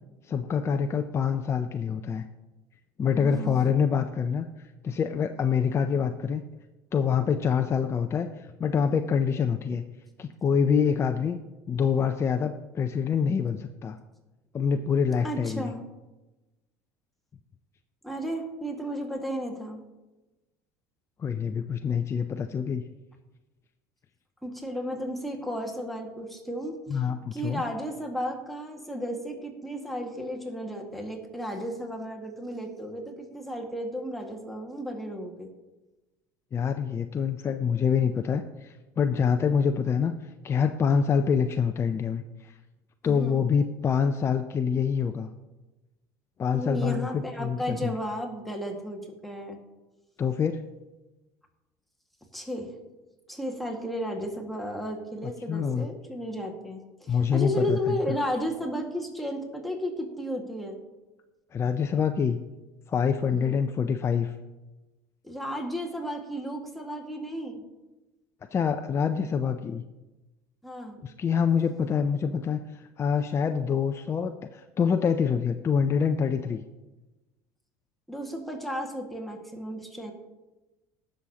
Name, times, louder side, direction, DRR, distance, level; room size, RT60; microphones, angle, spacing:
voice 1, 0.3-2.2 3.0-4.5 4.8-6.4 6.9-9.8 10.2-11.4 11.7-14.0 14.5-15.7 21.2-22.8 26.9-27.6 36.5-40.1 40.4-42.2 43.0-45.3 46.4-48.0 50.2-50.6 55.5-55.9 57.1-58.0 61.5-62.4 62.9-64.3 68.5-69.8 71.0-76.6, left 6 dB, 30° left, 7 dB, 0.5 m, -26 dB
voice 2, 3.1-3.6 15.2-15.8 18.0-19.8 24.4-27.1 27.3-35.5 43.0-43.5 46.5-49.6 52.3-52.7 53.3-60.8 63.3-63.6 65.2-67.6 70.6-71.0 78.1-80.1, equal, ahead, 0 dB, 1.8 m, -33 dB
18.0 x 6.4 x 2.9 m, 1.1 s
supercardioid pair, 85°, 9 cm